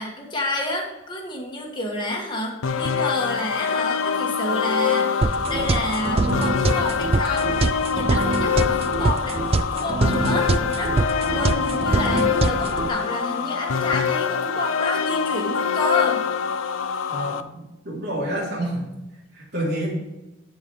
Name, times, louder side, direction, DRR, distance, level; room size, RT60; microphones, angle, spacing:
voice 1, 0.0-7.6 7.9-9.4 9.7-16.2, left 2 dB, 25° left, -1 dB, 1.5 m, -29 dB
sound 1, 2.6-17.4, left 6 dB, 90° left, 0.5 m, -24 dB
sound 2, 5.2-12.9, right 3 dB, 30° right, 0.3 m, -24 dB
voice 2, 17.1-18.9 19.4-19.9, right 1 dB, 50° right, -4 dB, 3.5 m, -28 dB
12.5 x 4.7 x 5.4 m, 1.0 s
head